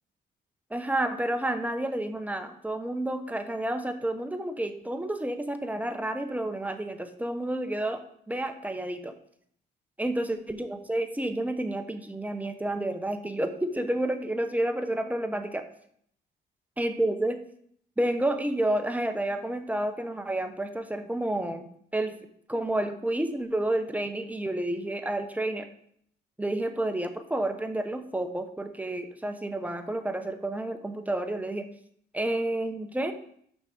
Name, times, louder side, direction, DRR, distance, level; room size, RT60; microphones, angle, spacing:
voice 1, 0.7-8.0 8.3-9.1 10.0-15.7 16.8-17.4 18.0-22.2 22.5-25.7 26.4-31.7 32.1-33.1, right 1 dB, 10° right, 7 dB, 0.9 m, -30 dB
6.3 x 5.8 x 5.0 m, 0.66 s
cardioid pair, 90°, 20 cm